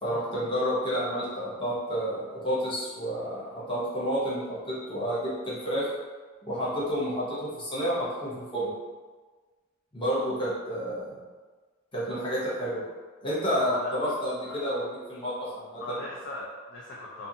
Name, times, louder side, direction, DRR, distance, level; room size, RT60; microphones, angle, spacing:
voice 1, 0.0-5.9 6.4-8.7 9.9-11.2 11.9-12.8 13.2-16.0, equal, 25° left, -8 dB, 0.8 m, -30 dB
voice 2, 13.5-14.0 14.5-14.6 15.8-17.3, left 2 dB, 55° left, -6 dB, 0.4 m, -39 dB
2.6 x 2.5 x 2.7 m, 1.4 s
head